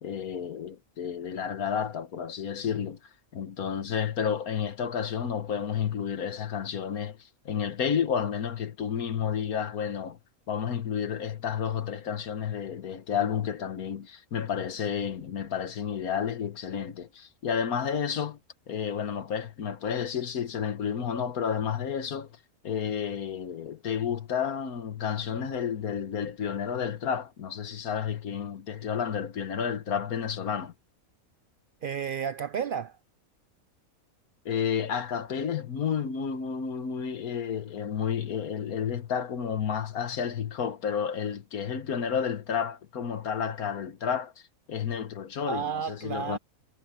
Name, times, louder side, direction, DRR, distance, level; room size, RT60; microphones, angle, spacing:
voice 1, 0.0-3.0 3.3-10.2 10.5-18.4 18.7-22.3 22.6-30.7 34.5-44.3 44.7-46.4, left 7 dB, 80° left, 1.7 m, -31 dB
voice 2, 31.8-33.0 45.4-46.4, right 7 dB, 90° right, 0.4 m, -32 dB
omnidirectional pair, 1.5 m